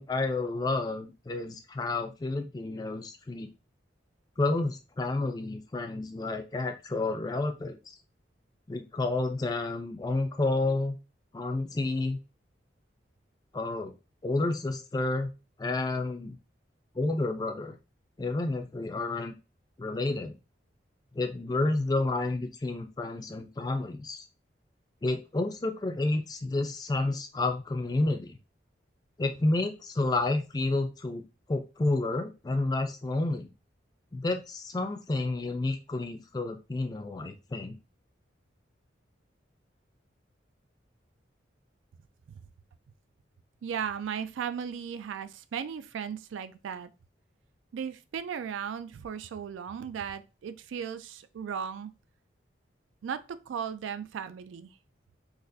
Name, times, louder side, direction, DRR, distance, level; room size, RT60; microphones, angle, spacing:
voice 1, 0.0-3.5 4.4-7.8 8.7-11.0 11.3-12.2 13.5-13.9 14.2-15.3 15.6-16.4 17.0-17.8 18.2-19.3 19.8-20.3 21.1-24.2 25.0-28.4 29.2-33.5 34.1-37.8, left 2 dB, 20° left, 0.3 m, -30 dB
voice 2, 43.6-46.9 47.7-51.9 53.0-54.7, right 7 dB, 90° right, 0.3 m, -36 dB
4.1 x 2.4 x 2.5 m
head